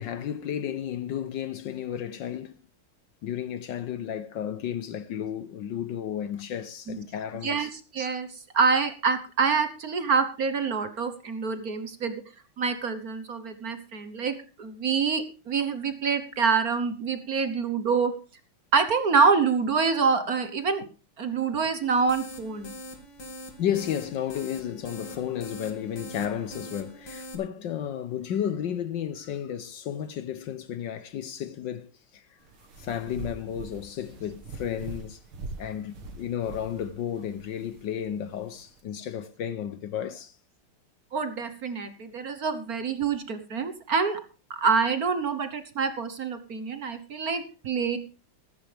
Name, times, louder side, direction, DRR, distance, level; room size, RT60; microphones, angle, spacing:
voice 1, 0.0-2.6 3.2-7.7 23.6-32.2 32.8-35.2 35.6-40.4, left 9 dB, 65° left, 1.3 m, -33 dB
voice 2, 7.4-8.3 8.5-12.2 12.6-18.1 18.7-20.8 21.2-22.7 41.1-44.2 44.6-48.0, right 5 dB, 50° right, 1.5 m, -26 dB
sound 1, 21.8-27.4, equal, 50° left, 2.7 m, -43 dB
sound 2, 32.4-38.8, right 2 dB, 75° right, 2.7 m, -43 dB
14.5 x 14.0 x 3.4 m
omnidirectional pair, 2.4 m